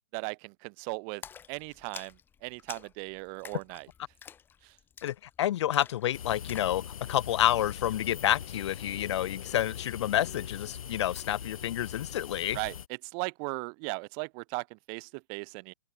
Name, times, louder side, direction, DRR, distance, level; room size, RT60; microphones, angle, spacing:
voice 1, 0.1-1.2 1.5-2.1 2.4-3.9 4.6-4.8 12.5-12.8 13.0-15.7, right 40 dB or more, 25° right, 1.1 m, -37 dB
Splash splatter, 1.2-6.8, left 8 dB, 10° left, 1.2 m, -49 dB
voice 2, 5.0-6.8 7.1-12.6, left 12 dB, 50° left, 0.4 m, -29 dB
sound 1, 6.1-12.9, left 9 dB, 70° left, 4.6 m, -41 dB
open air
hypercardioid pair, 155°, 19 cm